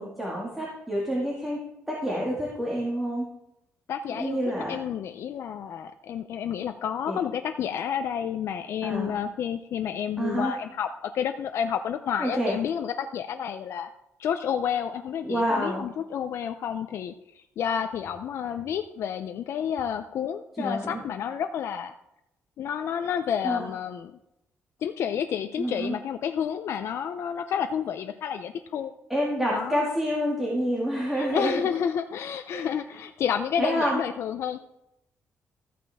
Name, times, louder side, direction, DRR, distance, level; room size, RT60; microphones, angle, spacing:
voice 1, 0.0-1.6 1.9-3.3 4.1-4.8 7.1-7.2 8.8-9.2 10.2-10.5 12.2-12.6 15.2-15.8 20.6-21.0 23.4-23.7 25.6-25.9 29.1-31.6 32.5-32.7 33.6-34.0, equal, 5° right, -5 dB, 2.0 m, -28 dB
voice 2, 3.9-4.4 4.7-13.9 14.2-21.9 22.6-24.2 24.8-28.9 29.5-29.8 31.1-34.6, left 8 dB, 65° left, 7 dB, 0.5 m, -30 dB
13.5 x 8.5 x 3.5 m, 0.83 s
cardioid pair, 150°, 5 cm